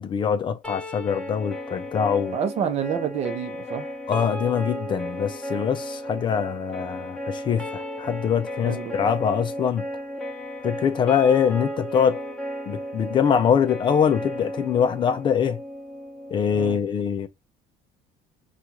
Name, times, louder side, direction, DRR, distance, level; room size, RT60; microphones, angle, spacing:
voice 1, 0.0-2.4 4.1-9.8 10.6-12.2 12.7-15.6 16.3-17.3, left 7 dB, 30° left, 0.4 m, -23 dB
sound 1, 0.6-16.7, equal, 5° left, 0.8 m, -34 dB
voice 2, 2.3-3.9 8.6-9.1 16.5-16.8, right 8 dB, 45° right, 0.7 m, -28 dB
5.0 x 2.4 x 2.9 m
cardioid pair, 155°, 16 cm